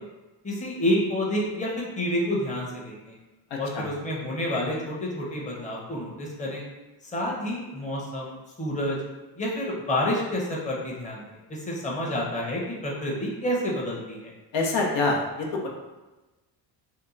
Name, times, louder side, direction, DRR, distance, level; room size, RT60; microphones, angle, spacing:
voice 1, 0.4-3.2 3.6-6.6 7.1-9.0 9.4-11.2 11.5-14.3, left 1 dB, 15° left, -3 dB, 0.8 m, -29 dB
voice 2, 3.5-3.9 14.5-15.7, left 3 dB, 75° left, -1 dB, 0.8 m, -26 dB
2.8 x 2.2 x 3.8 m, 1.1 s
cardioid pair, 95°, 45 cm